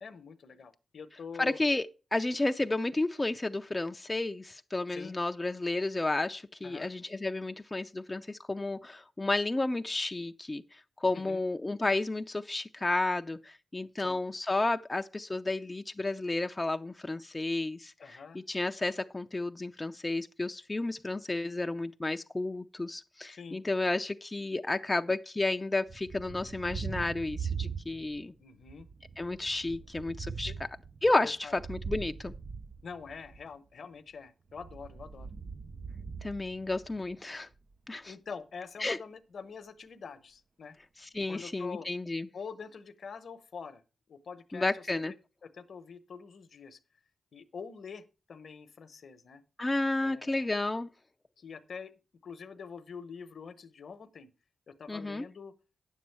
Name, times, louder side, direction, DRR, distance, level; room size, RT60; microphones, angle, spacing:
voice 1, 0.0-1.6 4.9-5.1 6.6-6.9 11.1-11.4 14.0-14.2 18.0-18.4 23.3-23.6 28.4-28.9 30.4-30.6 31.2-31.6 32.8-35.3 38.1-40.8 41.3-41.9 42.3-43.8 44.1-45.1 45.4-46.8 47.3-49.4 50.0-50.5 51.4-51.9 52.2-54.3 54.7-55.5, left 5 dB, 65° left, 0.9 m, -45 dB
voice 2, 1.4-28.3 29.2-30.5 31.0-32.3 36.2-37.5 37.9-38.1 38.8-39.0 41.0-42.3 44.5-45.1 49.6-50.9 54.9-55.3, left 2 dB, 25° left, 0.5 m, -32 dB
Thunder, 25.9-28.3 28.6-33.5 34.5-37.2, right 6 dB, 45° right, 0.5 m, -41 dB
9.2 x 7.4 x 4.5 m
cardioid pair, 55°, 0 cm